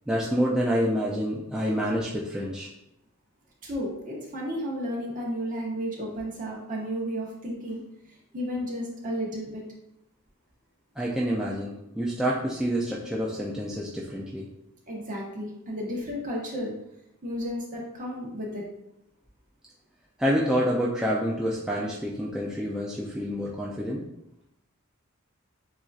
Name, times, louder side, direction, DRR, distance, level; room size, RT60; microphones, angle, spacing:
voice 1, 0.1-2.7 11.0-14.5 20.2-24.1, equal, 5° right, -5 dB, 0.4 m, -27 dB
voice 2, 3.6-7.8 8.3-9.6 14.9-16.7 17.2-18.6, equal, 40° right, -3 dB, 1.2 m, -33 dB
7.5 x 2.7 x 2.4 m, 0.84 s
head